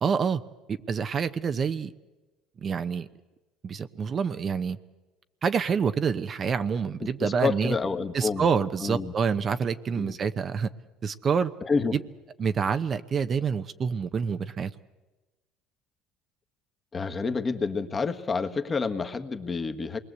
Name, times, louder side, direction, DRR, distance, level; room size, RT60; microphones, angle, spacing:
voice 1, 0.0-0.4 0.7-1.9 2.6-3.1 3.6-4.8 5.4-7.8 8.1-10.7 11.0-11.5 11.9-12.0 12.4-14.7, right 6 dB, 40° right, 10 dB, 0.9 m, -27 dB
voice 2, 7.0-8.5 8.8-9.1 9.9-10.1 11.6-12.0 16.9-20.0, left 4 dB, 30° left, 7 dB, 1.6 m, -29 dB
27.0 x 21.0 x 8.2 m, 1.2 s
supercardioid pair, 95°, 0 cm